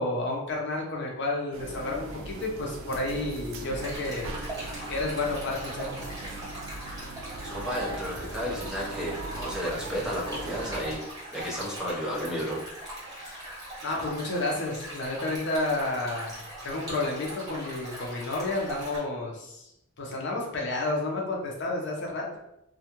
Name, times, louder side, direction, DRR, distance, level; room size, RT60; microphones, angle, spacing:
voice 1, 0.0-4.3 4.9-6.0 13.1-13.5 13.8-16.3 16.6-19.7 20.0-22.4, left 2 dB, 55° left, -1 dB, 0.6 m, -31 dB
sound 1, 1.5-11.0, right 2 dB, 75° right, 0.4 m, -39 dB
Stream, 3.7-19.0, right 1 dB, 20° right, 0.9 m, -41 dB
voice 2, 7.4-11.0 11.3-12.6, equal, 5° right, -6 dB, 0.5 m, -32 dB
2.3 x 2.2 x 2.9 m, 0.84 s
head